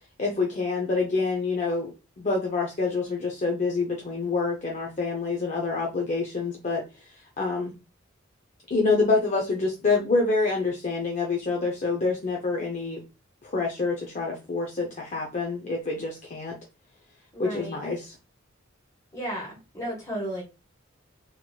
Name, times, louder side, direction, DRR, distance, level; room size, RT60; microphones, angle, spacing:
voice 1, 0.2-1.9 2.2-7.1 7.4-7.7 8.7-13.0 13.4-16.6 17.4-18.1, left 3 dB, 35° left, 0 dB, 0.5 m, -27 dB
voice 2, 17.3-17.8 19.1-20.4, right 1 dB, 15° left, -2 dB, 1.3 m, -34 dB
3.0 x 2.8 x 2.2 m, 0.28 s
head